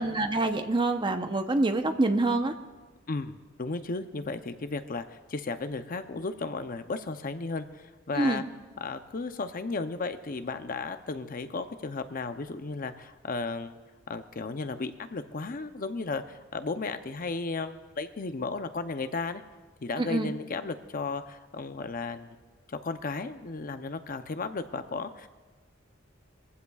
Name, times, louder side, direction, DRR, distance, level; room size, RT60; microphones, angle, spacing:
voice 1, 0.0-2.5 8.2-8.4 20.0-20.3, right 2 dB, 25° right, 7 dB, 0.7 m, -26 dB
voice 2, 3.1-8.4 8.8-13.8 14.1-19.4 19.8-22.3 22.7-25.3, left 3 dB, 45° left, 9 dB, 0.6 m, -34 dB
22.5 x 15.0 x 2.4 m, 1.3 s
head